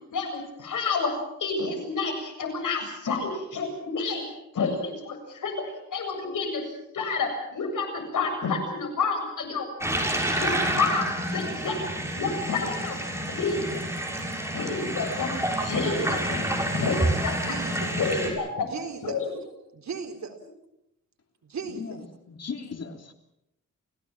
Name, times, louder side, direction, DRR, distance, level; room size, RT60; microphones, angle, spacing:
voice 1, 0.1-1.1 1.4-4.2 4.5-6.6 6.9-10.0 10.4-11.9 12.1-13.0 13.3-13.9 14.5-15.3 15.6-16.4 16.7-17.5 18.0-18.6 19.0-19.3, left 4 dB, 75° left, 7.7 m, -29 dB
sound 1, 9.8-18.3, right 1 dB, 10° right, 6.4 m, -29 dB
voice 2, 15.8-16.4 17.5-18.0 18.7-19.2 19.7-20.4 21.4-22.0, right 6 dB, 60° right, 3.9 m, -37 dB
voice 3, 21.7-23.1, left 5 dB, 55° left, 3.3 m, -38 dB
29.0 x 17.0 x 7.4 m
cardioid pair, 95°, 31 cm